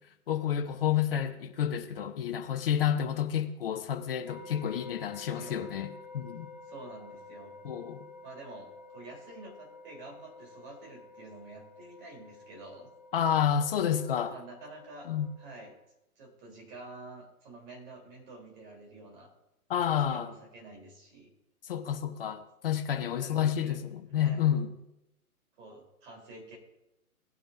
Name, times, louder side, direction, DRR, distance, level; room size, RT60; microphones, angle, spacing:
voice 1, 0.3-6.5 7.6-8.1 13.1-14.3 15.1-15.3 19.7-20.3 21.7-24.7, left 9 dB, 40° left, 0.9 m, -30 dB
sound 1, 4.3-15.7, left 3 dB, 5° right, 0.7 m, -51 dB
voice 2, 5.3-5.8 6.7-7.5 8.2-12.9 14.3-15.1 15.4-15.8 16.2-19.3 19.9-21.3 23.2-23.8 24.2-24.4 25.6-26.6, right 2 dB, 35° right, 3.5 m, -48 dB
18.0 x 8.8 x 2.6 m
figure-of-eight pair, 130°, 44 cm